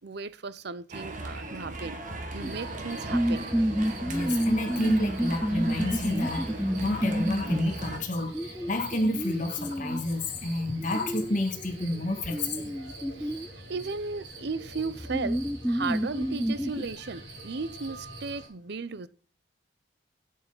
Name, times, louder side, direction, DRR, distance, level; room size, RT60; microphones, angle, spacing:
voice 1, 0.0-2.0 2.3-3.5 13.2-13.3 13.7-19.1, right 4 dB, 60° right, 0.6 m, -35 dB
sound 1, 0.9-8.0, right 2 dB, 40° right, 1.5 m, -38 dB
sound 2, 2.3-18.5, right 2 dB, 75° right, 4.4 m, -45 dB
sound 3, 2.4-2.5 3.1-10.0 10.6-13.5 14.4-14.5 14.9-16.8, equal, ahead, 0.3 m, -30 dB
voice 2, 4.1-6.5 6.8-12.7, left 1 dB, 40° left, 1.5 m, -30 dB
8.4 x 8.1 x 3.9 m
head